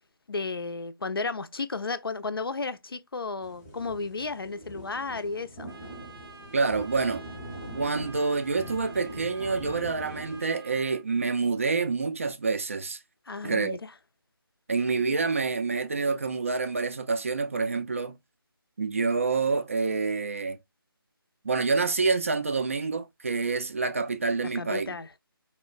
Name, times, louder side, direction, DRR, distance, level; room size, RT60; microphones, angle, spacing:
voice 1, 0.3-5.7 13.3-13.9 24.4-25.1, left 4 dB, 70° left, 0.5 m, -33 dB
sound 1, 3.4-10.4, right 1 dB, 10° left, 0.6 m, -42 dB
Trumpet, 5.7-11.0, right 4 dB, 70° right, 0.7 m, -49 dB
voice 2, 6.5-7.2 7.7-13.0 13.4-13.8 14.7-18.2 18.8-20.6 21.4-25.0, right 4 dB, 35° right, 0.4 m, -27 dB
4.1 x 2.1 x 2.3 m
figure-of-eight pair, 155°, 13 cm